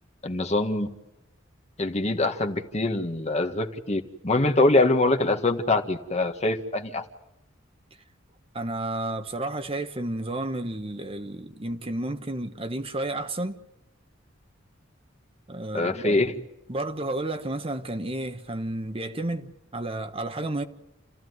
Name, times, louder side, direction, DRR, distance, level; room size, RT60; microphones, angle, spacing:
voice 1, 0.2-0.9 1.8-7.0 15.7-16.3, left 2 dB, 35° left, 1.6 m, -24 dB
voice 2, 8.5-13.6 15.5-16.1 16.7-20.6, right 2 dB, 30° right, 1.3 m, -31 dB
29.0 x 15.0 x 9.6 m
head